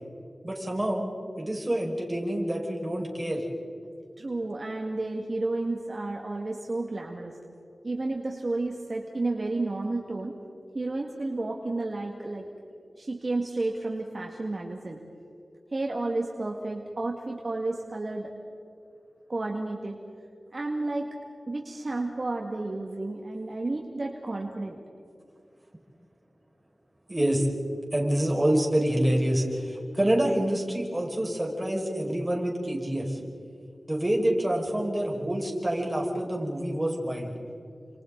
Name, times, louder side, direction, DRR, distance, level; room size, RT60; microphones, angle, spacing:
voice 1, 0.4-1.1 1.4-3.4 27.1-27.5 27.9-33.2 33.9-37.3, right 1 dB, 20° right, -1 dB, 5.6 m, -27 dB
voice 2, 4.2-7.4 7.8-10.3 10.7-12.5 13.0-15.0 15.7-18.3 19.3-20.0 20.5-21.1 21.5-24.8, right 2 dB, 50° right, 0 dB, 2.0 m, -31 dB
29.5 x 27.0 x 4.0 m, 2.5 s
wide cardioid pair, 75°, 0 cm